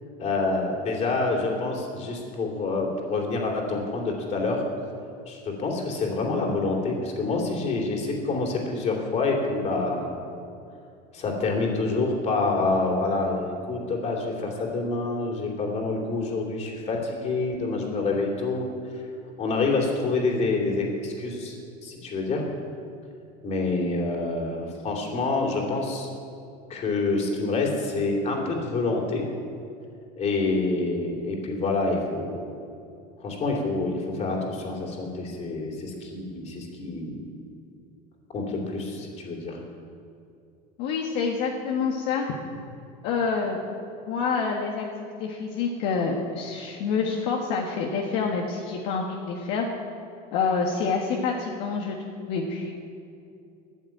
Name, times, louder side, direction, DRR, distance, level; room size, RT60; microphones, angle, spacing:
voice 1, 0.2-4.6 5.3-10.3 11.1-18.6 18.9-19.0 19.4-21.5 21.8-22.4 23.4-26.1 26.7-29.3 30.2-32.4 33.2-37.2 38.3-39.6, left 3 dB, 35° left, 0 dB, 2.9 m, -27 dB
voice 2, 40.8-42.3 43.0-43.6 44.1-44.8 45.2-49.7 50.3-52.0 52.3-52.7, left 5 dB, 65° left, 0 dB, 1.5 m, -27 dB
13.0 x 7.3 x 9.1 m, 2.6 s
supercardioid pair, 135°, 20 cm